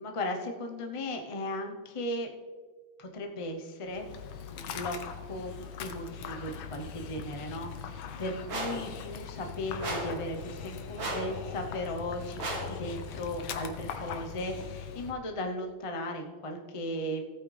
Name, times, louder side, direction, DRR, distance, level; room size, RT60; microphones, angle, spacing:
voice 1, 0.0-2.3 3.0-4.1 4.5-5.5 5.8-17.3, left 1 dB, 55° left, 3 dB, 0.3 m, -36 dB
Dog, 3.9-15.1, left 7 dB, 85° left, 1.6 m, -41 dB
sound 1, 8.5-8.9 9.8-10.2 11.0-11.3 12.4-12.8, right 2 dB, 85° right, 2.9 m, -34 dB
16.0 x 8.8 x 3.3 m, 1.5 s
omnidirectional pair, 2.2 m